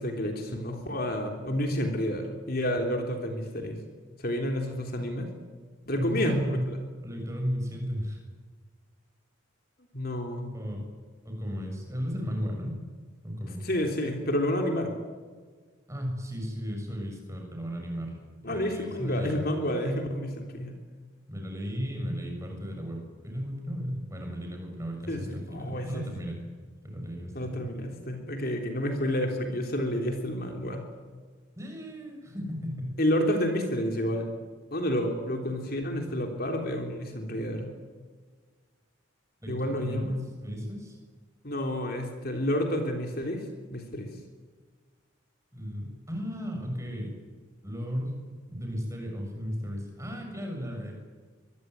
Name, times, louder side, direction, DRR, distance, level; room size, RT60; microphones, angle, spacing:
voice 1, 0.0-3.8 4.2-5.3 5.9-6.4 6.7-6.8 9.9-10.5 13.6-14.9 18.4-20.7 25.1-25.2 25.5-26.1 27.4-30.8 33.0-34.3 34.7-37.7 39.5-40.2 41.4-43.4 43.7-44.1, equal, 45° left, 3 dB, 3.5 m, -30 dB
voice 2, 5.9-6.7 7.0-8.2 10.5-10.8 11.2-12.7 13.2-13.6 15.9-18.2 18.4-19.4 21.3-26.4 26.8-27.6 31.6-32.9 39.4-40.1 40.4-41.0 45.5-47.1 47.6-48.1 48.5-50.9, equal, 15° right, 2 dB, 6.8 m, -34 dB
24.0 x 22.0 x 9.5 m, 1.5 s
head